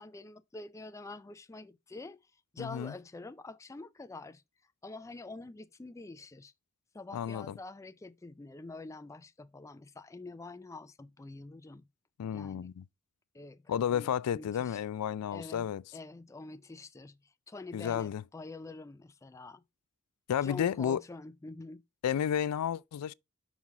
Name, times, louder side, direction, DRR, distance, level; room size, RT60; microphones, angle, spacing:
voice 1, 0.0-2.2 2.5-4.4 4.8-6.5 6.9-11.9 12.3-12.7 13.3-14.8 15.3-19.6 20.4-21.8, left 3 dB, 15° left, 0.3 m, -46 dB
voice 2, 2.6-2.9 7.1-7.5 12.2-12.8 13.7-15.8 17.7-18.2 20.3-21.0 22.0-23.1, left 9 dB, 90° left, 0.3 m, -32 dB
6.0 x 5.6 x 3.7 m
head